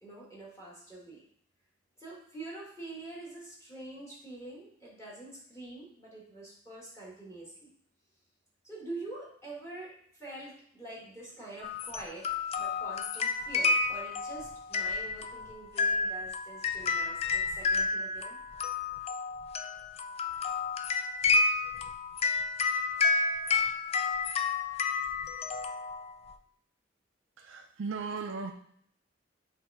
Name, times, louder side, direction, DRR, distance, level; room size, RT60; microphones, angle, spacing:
voice 1, 0.0-1.2 2.0-7.7 8.6-12.3 12.6-18.4, right 2 dB, 15° left, -5 dB, 1.6 m, -45 dB
sound 1, 11.6-26.3, left 4 dB, 30° left, 0.3 m, -30 dB
voice 2, 27.4-28.5, right 4 dB, 85° right, 4 dB, 0.5 m, -37 dB
6.1 x 3.3 x 4.7 m, 0.66 s
head